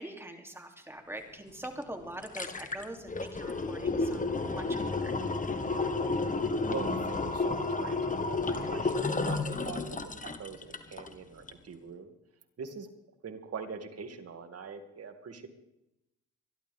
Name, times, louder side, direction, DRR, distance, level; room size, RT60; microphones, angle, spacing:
voice 1, 0.0-5.1, right 1 dB, 10° right, 3 dB, 2.9 m, -43 dB
sound 1, 1.6-1.7 2.0-11.1 11.5-11.6, left 3 dB, 25° left, 1.5 m, -31 dB
voice 2, 5.7-6.1 6.7-12.1 12.6-12.9 13.2-15.5, right 5 dB, 55° right, 6 dB, 2.4 m, -43 dB
25.0 x 12.0 x 3.6 m, 0.87 s
cardioid pair, 90°, 30 cm